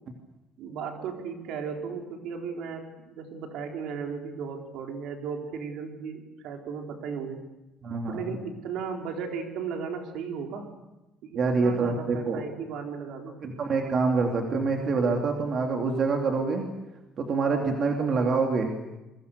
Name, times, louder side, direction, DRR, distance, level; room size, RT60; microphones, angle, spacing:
voice 1, 0.6-7.4 8.1-10.7 11.2-13.4, right 6 dB, 65° right, 3 dB, 4.2 m, -36 dB
voice 2, 7.8-8.2 11.3-12.4 13.4-16.7 17.2-18.7, right 4 dB, 35° right, 2 dB, 2.8 m, -26 dB
28.0 x 23.0 x 6.8 m, 1.0 s
cardioid pair, 170°, 0 cm